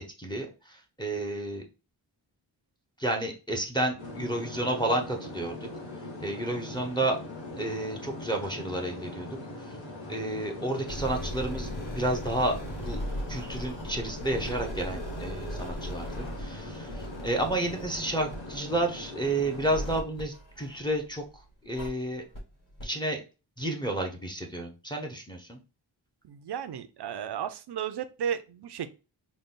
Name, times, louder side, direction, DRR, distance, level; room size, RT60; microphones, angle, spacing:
voice 1, 0.2-1.7 3.0-5.7 6.2-7.2 7.6-9.3 10.1-13.0 13.3-21.2 21.6-22.2 22.8-23.2 23.6-25.6, right 1 dB, 10° left, 2 dB, 0.7 m, -31 dB
sound 1, 4.0-20.0, left 1 dB, 70° left, 1.7 m, -41 dB
sound 2, 10.8-21.2 21.7-21.9 22.3-22.4 22.8-22.9, equal, 45° left, 2.0 m, -38 dB
voice 2, 26.2-28.9, right 8 dB, 60° right, 10 dB, 0.5 m, -34 dB
4.0 x 2.2 x 3.6 m, 0.31 s
wide cardioid pair, 95°, 45 cm